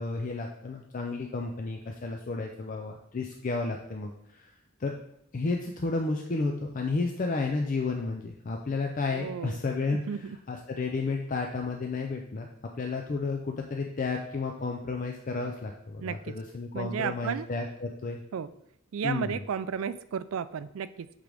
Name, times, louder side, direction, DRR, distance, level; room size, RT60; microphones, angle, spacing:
voice 1, 0.0-4.5 4.8-4.9 5.3-12.5 12.8-18.2 19.0-19.4, left 3 dB, 40° left, 2 dB, 0.4 m, -32 dB
voice 2, 9.1-9.6 9.9-10.4 16.0-16.4 16.7-17.5 18.3-18.5 18.9-21.1, right 7 dB, 75° right, 14 dB, 0.3 m, -33 dB
7.9 x 3.7 x 3.4 m, 0.77 s
head